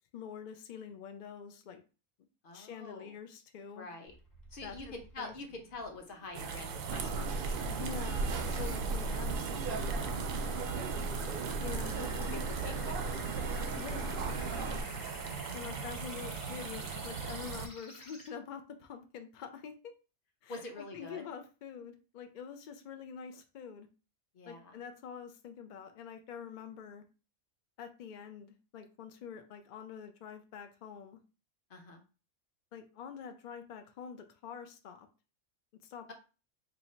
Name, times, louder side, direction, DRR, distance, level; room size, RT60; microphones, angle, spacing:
voice 1, 0.1-1.8 2.5-3.9 4.6-5.3 7.7-10.4 11.6-12.1 13.7-14.2 15.5-19.7 20.4-23.9 24.5-27.0 27.8-31.2 32.7-35.1 35.8-36.1, left 7 dB, 80° left, 7 dB, 0.4 m, -46 dB
voice 2, 2.4-3.2 3.7-4.1 4.5-7.7 8.5-8.7 11.0-11.4 12.3-13.0 20.5-21.3 24.3-24.8 31.7-32.0, left 2 dB, 50° left, 3 dB, 0.9 m, -46 dB
sound 1, 4.1-18.3, left 1 dB, 20° left, 0.7 m, -51 dB
sound 2, 6.3-17.7, right 6 dB, 90° right, 1.0 m, -40 dB
sound 3, 6.9-14.8, right 3 dB, 65° right, 0.5 m, -36 dB
2.8 x 2.7 x 4.3 m, 0.34 s
omnidirectional pair, 1.4 m